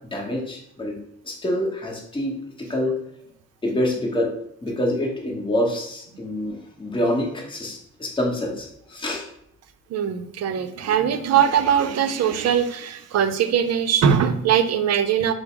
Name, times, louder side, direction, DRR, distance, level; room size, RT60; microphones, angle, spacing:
voice 1, 0.1-1.0 1.2-2.9 3.6-4.3 4.6-9.3, left 1 dB, 15° left, -2 dB, 1.1 m, -26 dB
voice 2, 9.9-15.3, right 8 dB, 60° right, 8 dB, 0.5 m, -21 dB
5.1 x 2.1 x 4.5 m, 0.71 s
cardioid pair, 90°, 30 cm